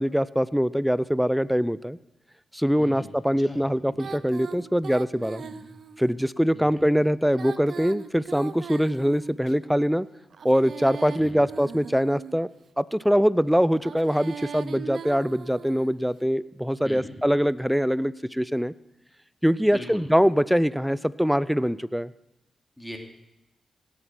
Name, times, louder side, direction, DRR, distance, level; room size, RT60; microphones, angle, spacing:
voice 1, 0.0-2.0 2.5-5.4 6.0-10.1 10.4-12.5 12.8-18.7 19.4-22.1, equal, ahead, 18 dB, 0.5 m, -23 dB
Female singing, 4.0-6.1 7.2-9.5 10.3-12.5 13.7-16.0, right 6 dB, 70° right, 0.7 m, -39 dB
voice 2, 6.5-6.9 11.2-11.4 16.8-17.1 19.7-20.1 22.8-23.0, left 1 dB, 15° left, 2 dB, 2.7 m, -40 dB
17.5 x 8.0 x 6.0 m, 0.93 s
cardioid pair, 55°, 0 cm